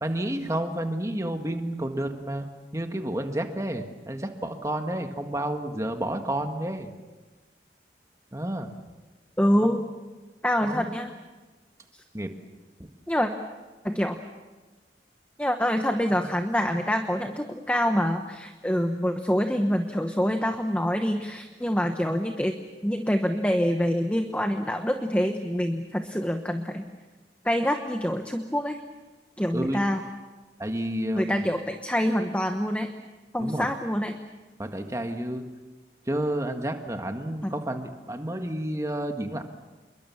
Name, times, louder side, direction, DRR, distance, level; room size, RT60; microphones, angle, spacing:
voice 1, 0.0-2.5 2.7-6.9 8.3-8.7 9.6-9.7 10.6-10.9 12.1-12.3 12.8-12.9 29.5-29.8 30.6-31.5 33.4-33.7 34.6-35.5 36.1-39.4, right 1 dB, 15° right, 5 dB, 1.7 m, -30 dB
voice 2, 9.4-9.8 10.4-11.1 11.9-12.0 13.1-13.3 13.8-14.2 15.4-22.5 22.8-26.9 27.4-28.8 29.4-30.0 31.1-32.9 33.3-34.2 37.4-37.5, equal, 10° left, 6 dB, 1.0 m, -26 dB
27.5 x 22.5 x 7.2 m, 1.2 s
head